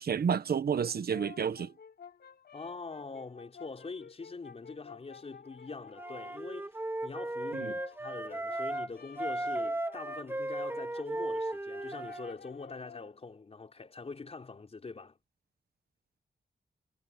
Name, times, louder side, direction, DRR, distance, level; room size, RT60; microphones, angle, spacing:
voice 1, 0.0-1.7 7.5-7.7, right 7 dB, 70° right, 1.2 m, -30 dB
Brass instrument, 0.8-6.4 7.3-13.2, left 7 dB, 80° left, 5.1 m, -52 dB
voice 2, 2.5-6.8 7.0-15.2, left 4 dB, 40° left, 4.6 m, -44 dB
Wind instrument woodwind instrument, 5.9-8.9 9.2-12.3, right 1 dB, 15° right, 2.5 m, -36 dB
wide cardioid pair, 135°, 16 cm